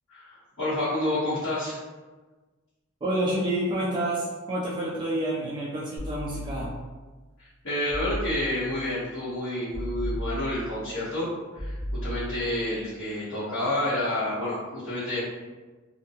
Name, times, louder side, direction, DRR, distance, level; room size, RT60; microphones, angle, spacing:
voice 1, 0.1-1.8 7.4-15.2, left 1 dB, 75° left, -13 dB, 1.0 m, -29 dB
voice 2, 3.0-6.7, right 1 dB, 20° right, -6 dB, 0.3 m, -28 dB
sound 1, 6.0-7.0 7.9-8.8 9.7-10.8 11.6-12.6, equal, 30° left, 0.7 m, -35 dB
2.5 x 2.2 x 2.7 m, 1.3 s
head